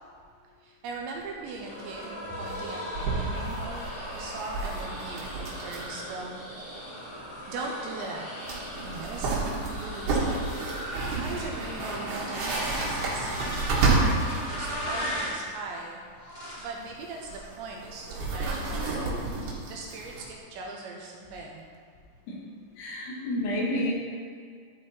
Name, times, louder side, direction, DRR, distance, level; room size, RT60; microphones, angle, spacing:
voice 1, 0.6-6.4 7.5-8.3 8.8-10.4 10.7-13.3 13.8-16.0 16.6-19.2 19.7-21.7, right 3 dB, 80° right, -1 dB, 2.8 m, -40 dB
sound 1, 1.2-1.3 1.5-1.6 1.9-2.0 2.5-6.0 6.3-6.4 8.0-8.1 8.4-14.8 16.6-20.3, right 3 dB, 60° right, 3.4 m, -30 dB
sound 2, 1.6-15.4 16.1-16.8 17.2-17.5 17.9-18.6, equal, 35° left, 0.8 m, -38 dB
voice 2, 22.8-23.9, left 1 dB, 75° left, -4 dB, 3.9 m, -29 dB
12.5 x 5.0 x 4.4 m, 2.1 s
omnidirectional pair, 5.6 m